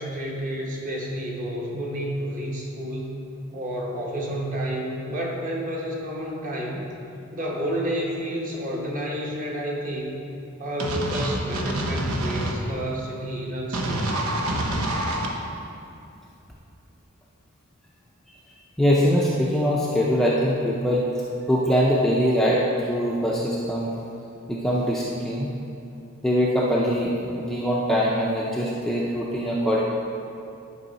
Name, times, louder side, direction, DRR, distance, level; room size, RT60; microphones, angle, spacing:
voice 1, 0.0-3.1 3.5-6.9 7.3-10.1 10.6-14.3, equal, 35° right, -2 dB, 1.2 m, -30 dB
sound 1, 10.8-12.5 13.7-15.3, right 1 dB, 80° right, 0.9 m, -26 dB
voice 2, 18.8-21.1 21.5-24.0 24.5-25.5 26.2-29.8, equal, ahead, -5 dB, 0.5 m, -22 dB
10.5 x 5.5 x 4.0 m, 2.7 s
head